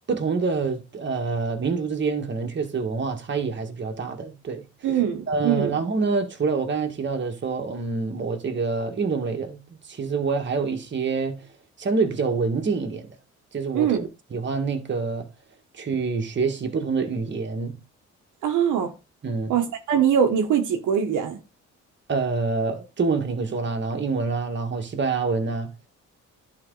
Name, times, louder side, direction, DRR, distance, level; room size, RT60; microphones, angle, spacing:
voice 1, 0.1-4.7 5.3-11.4 11.8-13.2 13.5-15.3 15.7-17.8 19.2-19.6 22.1-25.7, right 4 dB, 40° right, 1.7 m, -26 dB
voice 2, 4.8-5.8 13.7-14.0 18.4-18.9 19.5-21.4, right 8 dB, 80° right, 1.2 m, -22 dB
11.0 x 4.3 x 3.9 m
cardioid pair, 90°, 30 cm